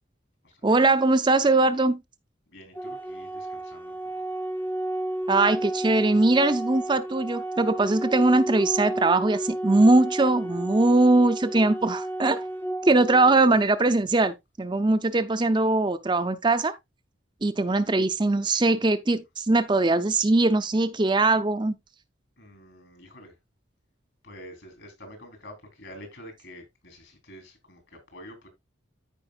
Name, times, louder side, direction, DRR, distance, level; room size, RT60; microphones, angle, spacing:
voice 1, 0.6-2.0 5.3-12.4 12.8-16.7 17.4-21.8, right 2 dB, 25° right, 0.6 m, -21 dB
voice 2, 2.5-4.0 22.4-23.4 24.2-28.5, equal, 65° left, 3.9 m, -47 dB
Organ, 2.8-13.7, right 1 dB, 10° left, 0.7 m, -32 dB
13.5 x 5.2 x 2.4 m
head